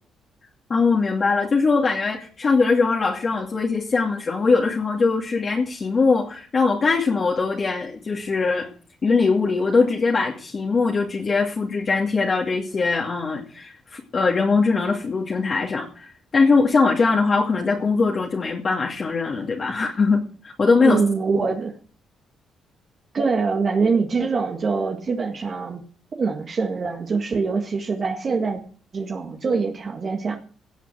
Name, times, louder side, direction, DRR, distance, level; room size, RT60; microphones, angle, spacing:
voice 1, 0.7-8.7 9.0-21.0, left 4 dB, 40° left, -2 dB, 2.6 m, -21 dB
voice 2, 20.8-21.8 23.1-25.8 26.2-28.6 28.9-30.4, right 4 dB, 45° right, 3 dB, 1.8 m, -24 dB
17.5 x 6.0 x 7.7 m, 0.43 s
cardioid pair, 90°, 0 cm